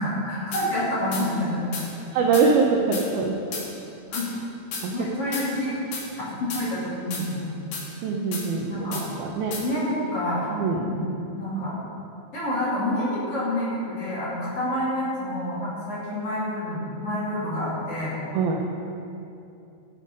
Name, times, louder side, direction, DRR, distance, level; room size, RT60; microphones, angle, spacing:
voice 1, 0.0-1.6 4.1-4.3 4.9-5.8 6.4-7.5 8.7-9.0 9.6-10.5 10.9-11.1 11.3-11.8 12.3-18.1, left 1 dB, 35° left, -9 dB, 3.1 m, -28 dB
sound 1, 0.5-0.7 1.1-1.3 1.7-1.9 2.3-2.5 2.9-3.1 3.5-3.7 4.1-4.3 4.7-4.9 5.3-5.5 5.9-6.1 6.5-6.6 7.1-7.2 7.7-7.9 8.3-8.5 8.9-9.1 9.5-9.6, left 4 dB, 60° left, 3.0 m, -33 dB
voice 2, 2.1-3.4 4.8-4.9 5.2-5.3 8.0-8.9 9.2-9.6 10.5-10.8 18.3-18.6, right 4 dB, 85° right, 0 dB, 2.1 m, -23 dB
14.5 x 8.2 x 5.3 m, 2.7 s
omnidirectional pair, 5.4 m